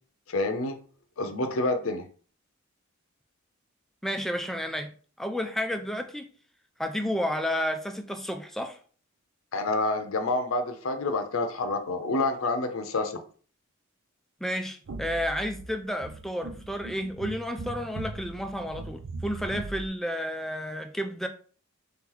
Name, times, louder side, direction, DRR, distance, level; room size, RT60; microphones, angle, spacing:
voice 1, 0.3-0.8 1.2-2.1 9.5-13.2, left 2 dB, 75° left, 0.6 m, -28 dB
voice 2, 4.0-4.9 5.2-6.3 6.8-8.8 14.4-21.3, equal, ahead, 0.3 m, -31 dB
sound 1, 14.9-19.9, right 2 dB, 65° right, 0.5 m, -40 dB
3.4 x 3.0 x 3.8 m
head